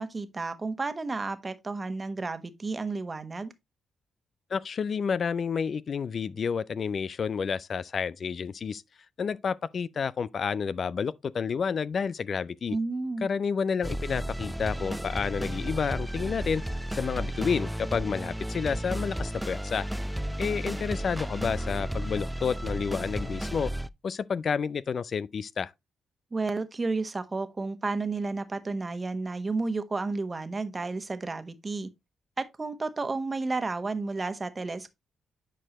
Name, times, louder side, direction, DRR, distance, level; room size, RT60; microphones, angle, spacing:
voice 1, 0.0-3.5 12.7-13.3 26.3-31.9 32.4-34.9, right 3 dB, 35° right, 1.1 m, -32 dB
voice 2, 4.5-8.8 9.2-12.8 13.2-16.6 16.9-19.9 20.4-23.7 24.0-25.7, left 6 dB, 55° left, 0.3 m, -30 dB
sound 1, 13.8-23.9, right 1 dB, 5° right, 0.4 m, -33 dB
9.9 x 4.6 x 3.0 m
hypercardioid pair, 45°, 0 cm